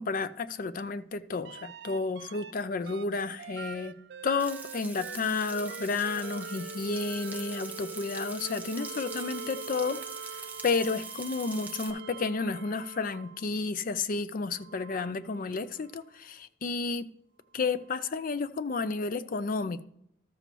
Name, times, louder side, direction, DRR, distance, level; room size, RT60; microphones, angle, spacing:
voice 1, 0.0-4.0 4.2-10.0 10.3-17.1 17.5-19.8, left 4 dB, 45° left, 13 dB, 0.4 m, -31 dB
sound 1, 1.4-2.5 2.9-13.6 14.5-16.0 17.8-17.9, right 5 dB, 55° right, 0.4 m, -44 dB
Frying (food), 4.4-11.9, right 4 dB, 10° right, 0.5 m, -44 dB
13.0 x 6.7 x 3.0 m, 0.73 s
head